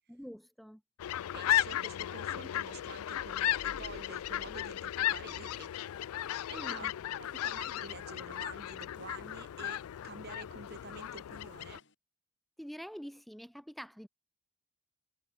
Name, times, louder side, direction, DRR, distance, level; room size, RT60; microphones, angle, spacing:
voice 1, 0.1-0.8 6.5-6.9 12.6-14.1, equal, ahead, 0.7 m, -46 dB
sound 1, 1.0-11.8, left 12 dB, 90° left, 0.3 m, -35 dB
voice 2, 1.3-5.7 6.5-6.9 7.2-11.8, right 3 dB, 45° right, 1.7 m, -49 dB
sound 2, 3.5-6.0, left 1 dB, 70° left, 3.9 m, -56 dB
sound 3, 5.1-11.9, left 2 dB, 55° left, 6.5 m, -63 dB
head